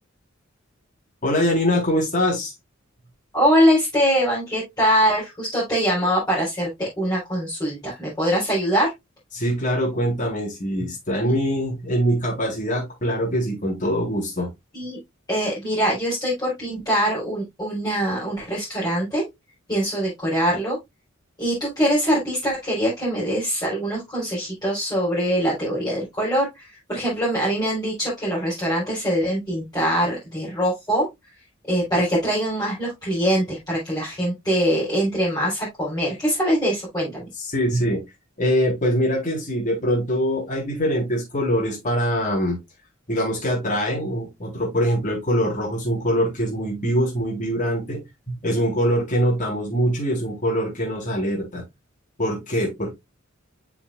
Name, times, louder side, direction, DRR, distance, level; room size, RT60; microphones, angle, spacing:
voice 1, 1.2-2.5 9.3-14.5 37.5-38.0 38.4-42.6 43.1-48.0 48.3-51.6 52.2-52.9, equal, 40° left, -2 dB, 3.8 m, -23 dB
voice 2, 3.3-8.9 11.2-11.3 14.7-15.0 15.3-19.2 19.7-20.8 21.4-31.1 31.7-37.3, equal, 20° left, -9 dB, 4.1 m, -23 dB
7.7 x 6.1 x 2.4 m, 0.19 s
head